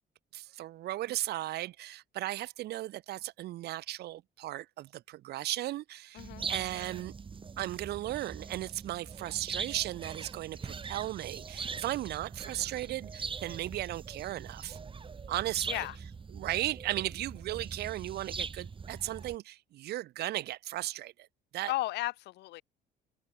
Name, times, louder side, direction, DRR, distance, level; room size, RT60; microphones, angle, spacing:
voice 1, 0.3-7.1 7.6-14.8 15.3-15.8 16.3-21.3 21.5-21.7, right 15 dB, 75° right, 3.8 m, -36 dB
voice 2, 6.1-6.5 15.7-16.0 21.7-22.6, left 17 dB, 80° left, 4.3 m, -34 dB
sound 1, 6.2-19.4, right 5 dB, 30° right, 7.4 m, -42 dB
cardioid pair, 110°, 17 cm